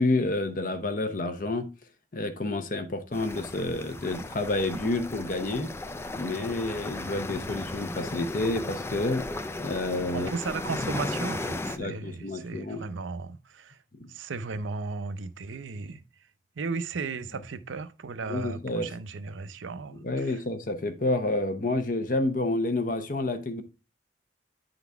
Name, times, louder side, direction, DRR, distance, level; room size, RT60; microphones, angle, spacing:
voice 1, 0.0-1.7 2.1-5.7 6.1-9.3 9.6-10.3 11.8-12.8 18.3-18.9 20.0-23.6, left 2 dB, 45° left, 0.7 m, -29 dB
sound 1, 3.1-11.8, left 2 dB, 15° left, 0.3 m, -35 dB
voice 2, 10.1-13.8 14.1-16.0 16.6-20.4, right 4 dB, 85° right, 0.6 m, -35 dB
9.4 x 4.0 x 3.4 m
head